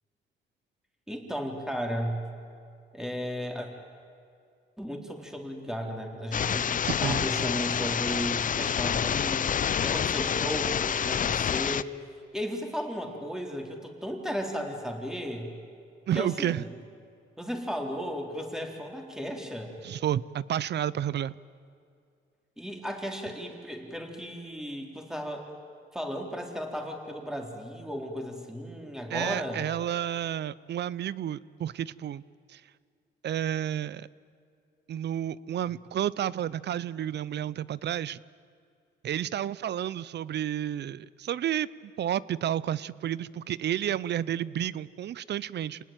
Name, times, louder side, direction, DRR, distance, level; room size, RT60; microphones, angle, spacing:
voice 1, 1.1-2.3 2.9-3.7 4.8-11.9 12.3-15.5 16.1-16.7 17.4-19.8 22.6-25.5 25.9-29.7, equal, 5° right, 2 dB, 4.1 m, -35 dB
sound 1, 6.3-11.8, left 8 dB, 40° left, 0.6 m, -28 dB
voice 2, 6.8-7.3 16.1-16.7 19.8-21.3 29.1-32.2 32.5-32.6 33.2-34.1 34.9-38.2 39.0-45.8, right 10 dB, 60° right, 20 dB, 0.7 m, -31 dB
27.0 x 19.5 x 9.2 m, 2.4 s
cardioid pair, 90°, 20 cm